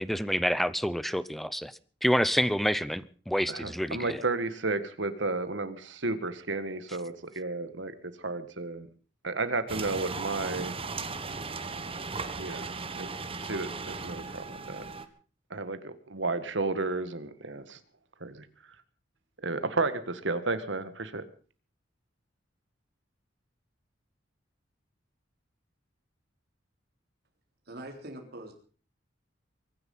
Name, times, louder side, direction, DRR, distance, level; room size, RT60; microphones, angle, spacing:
voice 1, 0.0-1.7 2.0-4.2, equal, ahead, 17 dB, 0.7 m, -28 dB
voice 2, 3.5-7.9 8.2-8.9 9.2-10.7 12.4-12.7 13.0-13.1 13.4-14.8 15.5-17.8 18.2-18.5 19.4-21.2, right 3 dB, 75° right, 11 dB, 1.8 m, -32 dB
sound 1, 9.7-15.0, right 4 dB, 30° right, 1.5 m, -37 dB
voice 3, 27.7-28.6, right 1 dB, 55° right, 2 dB, 4.0 m, -43 dB
23.5 x 10.5 x 5.6 m, 0.41 s
head